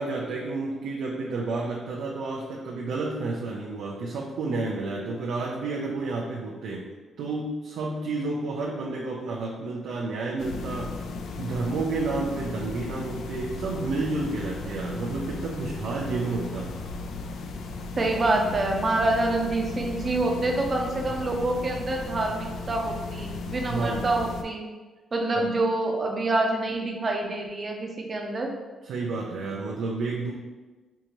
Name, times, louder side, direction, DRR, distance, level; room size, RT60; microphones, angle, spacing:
voice 1, 0.0-6.9 7.2-11.0 11.4-16.7 23.7-24.1 25.4-25.5 28.8-30.3, right 3 dB, 90° right, -3 dB, 0.5 m, -30 dB
sound 1, 10.4-24.4, left 3 dB, 70° left, 0.3 m, -36 dB
voice 2, 18.0-24.7 25.1-28.5, right 2 dB, 30° right, 1 dB, 0.6 m, -26 dB
4.7 x 2.6 x 2.9 m, 1.3 s
cardioid pair, 135°, 0 cm